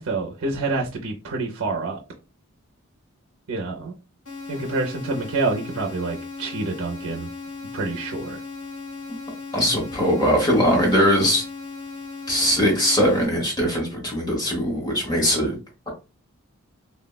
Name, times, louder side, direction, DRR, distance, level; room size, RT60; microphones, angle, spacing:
voice 1, 0.0-2.0 3.5-3.9 4.5-7.3 7.7-8.4, right 3 dB, 85° right, 0.5 m, -27 dB
sound 1, 4.3-13.3, left 4 dB, 75° left, 1.3 m, -37 dB
voice 2, 9.5-11.4 12.3-15.5, equal, 20° left, 1.0 m, -20 dB
3.4 x 2.1 x 2.2 m
head